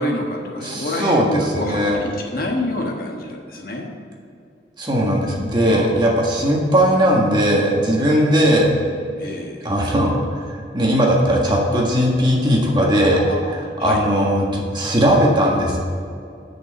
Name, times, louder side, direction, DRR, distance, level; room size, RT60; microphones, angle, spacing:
voice 1, 0.0-3.9 5.6-5.9 8.1-8.3 9.2-9.7 13.0-13.4 13.8-14.3, left 1 dB, 50° left, 0 dB, 1.4 m, -27 dB
voice 2, 0.6-2.0 4.8-8.7 9.6-13.2 13.5-15.8, equal, 25° right, -2 dB, 1.6 m, -18 dB
8.4 x 6.4 x 7.2 m, 2.4 s
head